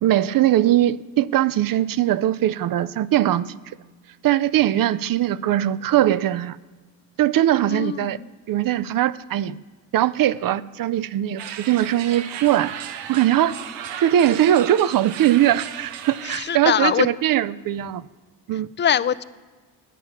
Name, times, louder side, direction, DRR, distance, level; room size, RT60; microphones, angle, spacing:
voice 1, 0.0-3.5 4.2-6.6 7.2-8.2 8.5-9.6 9.9-12.7 13.1-13.5 14.0-18.0 18.5-18.7, right 12 dB, 50° right, 0.5 m, -20 dB
voice 2, 7.7-8.3 16.3-17.1 18.8-19.2, left 9 dB, 25° left, 0.4 m, -22 dB
sound 1, 11.4-16.4, right 9 dB, 85° right, 1.0 m, -35 dB
9.3 x 8.7 x 5.7 m
supercardioid pair, 80°, 44 cm